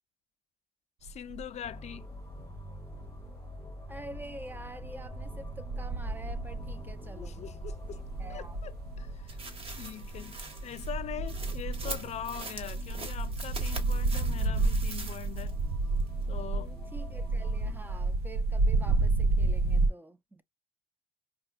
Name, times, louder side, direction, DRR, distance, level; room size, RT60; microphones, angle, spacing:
voice 1, 1.0-2.1 7.0-8.0 8.3-9.4 9.8-15.6 16.3-16.7, left 10 dB, 40° left, 0.4 m, -42 dB
sound 1, 1.1-1.7 2.1-3.4 3.9-19.9, right 3 dB, 70° right, 0.6 m, -31 dB
sound 2, 1.6-18.1, left 1 dB, 15° left, 0.8 m, -47 dB
voice 2, 3.9-7.5 7.9-8.6 16.5-20.4, right 2 dB, 10° right, 0.5 m, -47 dB
sound 3, 9.3-15.6 16.0-16.1, right 3 dB, 35° right, 1.4 m, -44 dB
4.9 x 2.3 x 2.2 m
cardioid pair, 110°, 17 cm